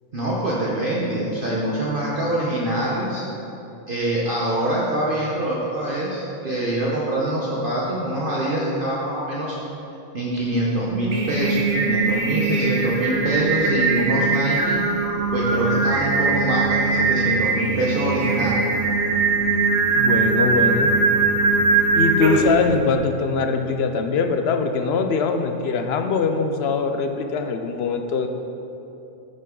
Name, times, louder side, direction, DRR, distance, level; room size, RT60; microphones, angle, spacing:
voice 1, 0.1-3.2 3.9-9.6 10.1-14.8 15.3-18.6, right 1 dB, 45° right, -6 dB, 1.1 m, -24 dB
Singing, 10.9-22.6, right 4 dB, 80° right, 1.4 m, -21 dB
sound 1, 15.2-23.0, right 4 dB, 10° left, 1.7 m, -35 dB
voice 2, 20.0-20.9 21.9-28.3, left 4 dB, 60° left, 6 dB, 0.8 m, -22 dB
9.3 x 6.5 x 3.8 m, 2.9 s
omnidirectional pair, 1.4 m